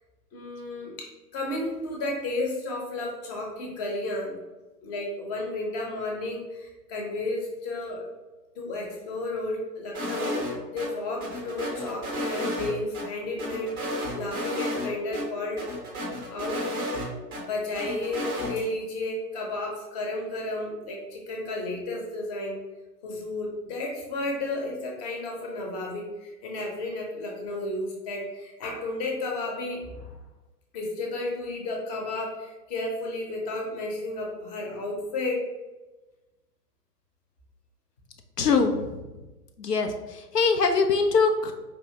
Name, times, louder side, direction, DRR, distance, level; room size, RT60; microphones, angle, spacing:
voice 1, 0.3-1.1 1.3-4.4 4.8-8.0 8.6-15.7 16.3-16.7 17.4-22.6 23.0-30.2 30.7-35.5, left 2 dB, 25° left, -1 dB, 0.8 m, -32 dB
sound 1, 9.9-10.9 11.2-13.0 13.4-14.9 15.1-15.2 15.6-17.4 17.7-18.5, equal, 15° right, 0.5 m, -32 dB
voice 2, 38.4-39.0 39.6-41.5, left 4 dB, 75° left, 5 dB, 0.6 m, -23 dB
4.6 x 2.8 x 2.7 m, 1.1 s
figure-of-eight pair, 115°, 48 cm